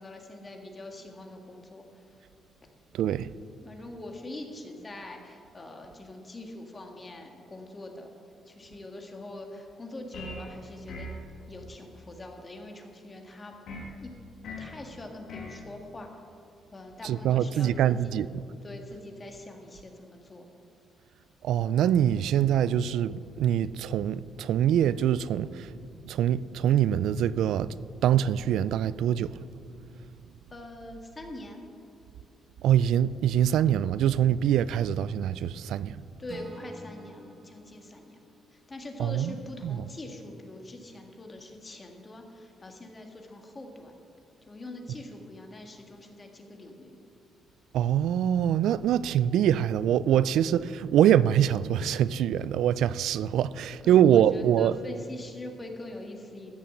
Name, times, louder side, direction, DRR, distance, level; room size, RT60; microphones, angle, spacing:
voice 1, 0.0-2.0 3.6-8.1 8.5-11.1 11.5-13.6 14.0-14.1 14.4-16.1 16.7-18.2 18.6-20.5 30.5-31.6 36.2-38.2 38.5-43.9 44.5-47.0 53.6-56.5, left 1 dB, 30° left, 1.9 m, -43 dB
voice 2, 2.9-3.3 17.0-18.3 21.4-25.7 26.0-27.7 28.0-29.3 32.6-36.0 39.0-39.3 39.6-39.8 47.7-54.7, right 10 dB, 80° right, 0.3 m, -24 dB
sound 1, 10.1-10.5 10.9-11.2 13.7-13.9 14.4-14.8 15.3-15.6, left 1 dB, 75° left, 2.2 m, -39 dB
Acoustic guitar / Strum, 36.3-39.5, right 2 dB, 40° right, 1.5 m, -49 dB
14.0 x 7.0 x 7.7 m
cardioid pair, 90°, 0 cm